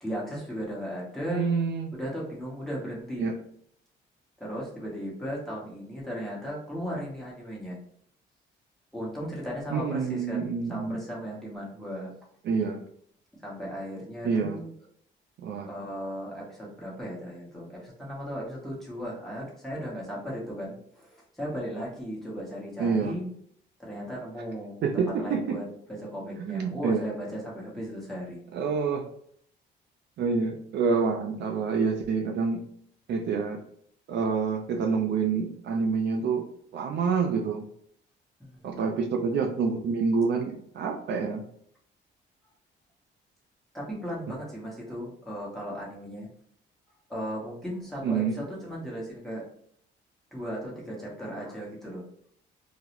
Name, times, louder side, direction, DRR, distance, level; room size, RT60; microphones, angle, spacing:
voice 1, 0.0-1.5 1.9-3.3 4.4-7.8 8.9-12.1 13.3-14.7 15.7-23.3 23.8-28.4 38.4-38.9 39.4-39.5 43.7-46.3 47.1-49.5 50.3-52.0, equal, ahead, -5 dB, 1.0 m, -36 dB
voice 2, 1.3-1.9 3.2-3.3 9.7-11.0 12.4-12.8 14.2-14.6 15.4-15.7 22.8-23.1 24.8-25.6 26.4-27.0 28.5-29.1 30.2-32.6 33.1-33.6 34.1-36.5 36.7-37.6 38.6-41.4 48.0-48.4, right 5 dB, 60° right, 3 dB, 0.4 m, -27 dB
2.3 x 2.0 x 2.9 m, 0.65 s
cardioid pair, 90°, 20 cm